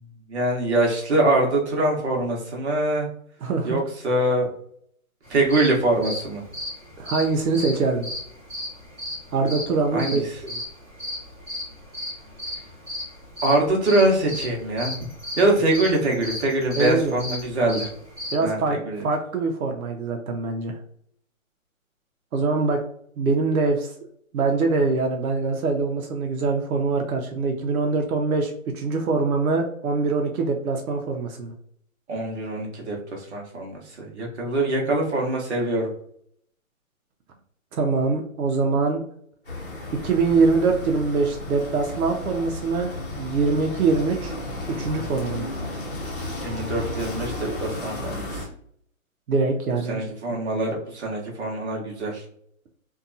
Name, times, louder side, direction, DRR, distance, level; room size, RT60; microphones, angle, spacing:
voice 1, 0.3-3.1 3.6-4.5 5.3-6.4 9.9-10.3 13.4-14.9 15.4-17.9 18.4-19.0 32.1-35.9 46.4-48.5 49.9-52.2, right 2 dB, 50° right, -1 dB, 0.9 m, -23 dB
sound 1, 5.3-18.4, left 1 dB, 5° right, 1.1 m, -34 dB
voice 2, 7.0-8.1 9.3-10.2 10.5-10.6 16.8-17.2 18.3-18.8 19.0-20.8 22.3-22.8 23.2-23.9 24.3-31.5 37.7-39.0 40.0-44.3 44.7-45.5 49.3-50.6, right 4 dB, 85° right, 2 dB, 0.6 m, -23 dB
sound 2, 39.4-48.4, left 2 dB, 40° left, 0.8 m, -33 dB
2.6 x 2.3 x 2.5 m, 0.66 s
hypercardioid pair, 175°, 42 cm